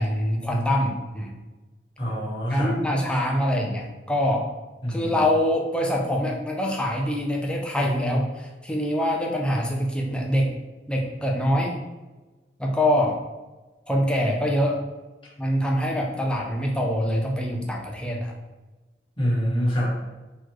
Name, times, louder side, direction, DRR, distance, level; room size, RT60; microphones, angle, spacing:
voice 1, 0.0-1.3 2.5-4.5 4.9-10.5 10.9-11.8 12.6-13.2 13.9-14.8 15.4-18.3, equal, 5° left, 0 dB, 0.5 m, -24 dB
voice 2, 2.0-2.7 3.1-3.2 4.8-5.2 19.2-20.1, equal, 30° left, -6 dB, 1.4 m, -26 dB
4.0 x 3.0 x 3.1 m, 1.2 s
head